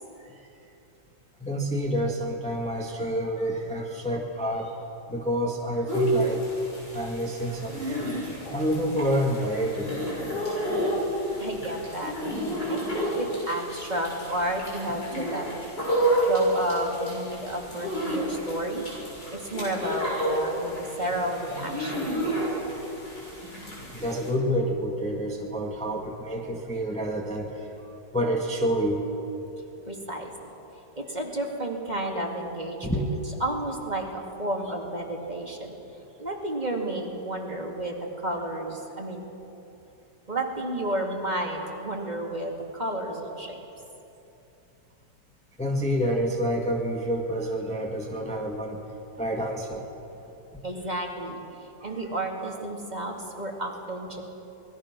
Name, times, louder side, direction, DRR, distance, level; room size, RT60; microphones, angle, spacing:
voice 1, 1.4-4.8 5.1-6.4 6.9-9.9 10.4-10.6 12.8-12.9 23.9-27.7 28.1-29.1 32.1-32.2 32.8-33.0 45.6-48.8 49.2-49.9 51.8-51.9, equal, 5° left, -1 dB, 1.7 m, -28 dB
sound 1, 5.9-24.3, right 1 dB, 70° left, 7.9 m, -31 dB
voice 2, 11.4-12.2 12.7-15.5 16.3-18.9 19.3-22.1 29.9-30.3 31.0-33.1 33.4-35.8 36.2-39.2 40.3-43.6 50.6-51.4 51.8-54.2, right 1 dB, 25° right, 0 dB, 2.5 m, -31 dB
26.5 x 21.0 x 6.1 m, 2.9 s
omnidirectional pair, 1.9 m